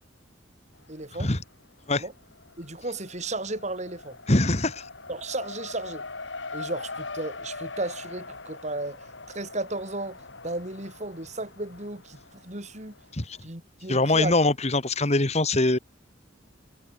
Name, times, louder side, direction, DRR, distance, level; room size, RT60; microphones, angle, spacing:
Race car auto racing, 0.7-1.5 1.8-13.1, left 3 dB, 70° left, 4.3 m, -42 dB
voice 1, 0.9-1.3 1.9-2.1 2.6-4.2 5.1-6.0 6.5-9.1 9.3-13.0 13.4-14.3, right 2 dB, 35° right, 4.9 m, -34 dB
voice 2, 4.3-4.9 13.1-13.4 13.9-15.8, left 2 dB, 35° left, 1.9 m, -23 dB
head